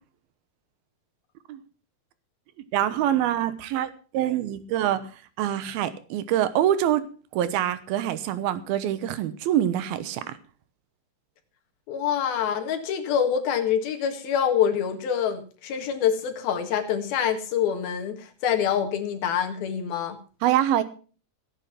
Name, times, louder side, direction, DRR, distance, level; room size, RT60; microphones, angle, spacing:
voice 1, 2.7-5.1 5.4-7.1 7.3-10.4 20.4-20.8, right 11 dB, 85° right, 13 dB, 3.0 m, -25 dB
voice 2, 11.9-20.2, left 8 dB, 75° left, 5 dB, 3.6 m, -26 dB
16.0 x 8.9 x 5.8 m, 0.38 s
omnidirectional pair, 4.3 m